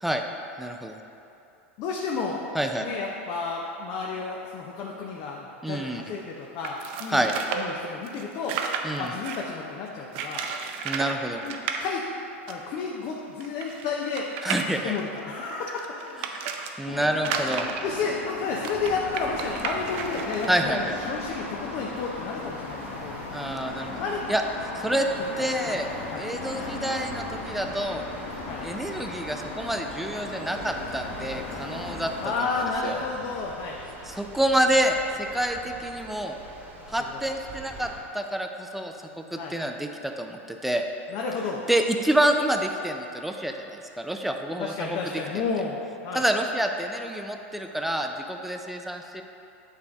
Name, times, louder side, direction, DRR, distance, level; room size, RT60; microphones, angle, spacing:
voice 1, 0.6-1.0 2.5-2.9 5.6-6.0 7.1-7.3 8.8-9.1 10.8-11.4 14.4-14.9 16.3-16.4 16.8-17.7 20.5-21.0 23.3-24.0 24.3-24.4 24.7-25.1 25.4-25.9 26.2-28.0 28.6-32.1 32.4-33.0 34.1-36.4 36.9-40.9 41.7-45.0 45.3-45.4 46.1-49.2, right 1 dB, 5° right, 4 dB, 0.4 m, -28 dB
voice 2, 1.8-2.4 2.8-7.3 7.5-8.6 9.0-10.5 11.4-12.1 12.5-14.3 14.8-16.3 17.8-23.2 24.0-24.3 24.9-25.1 25.7-25.8 26.1-26.2 28.5-28.6 32.2-33.8 37.0-37.2 39.3-39.5 41.1-41.6 44.6-46.2, left 4 dB, 50° left, -1 dB, 0.6 m, -31 dB
sound 1, 6.6-9.5 10.1-11.2 11.4-11.8 12.5-12.6 12.8-12.9 13.4-16.7 17.2-20.5, right 6 dB, 60° right, 0.5 m, -33 dB
sound 2, 16.9-32.3, left 3 dB, 75° left, 1.1 m, -37 dB
sound 3, 18.7-38.0, right 2 dB, 30° right, 1.2 m, -44 dB
8.4 x 3.2 x 3.6 m, 2.8 s
hypercardioid pair, 110°, 7 cm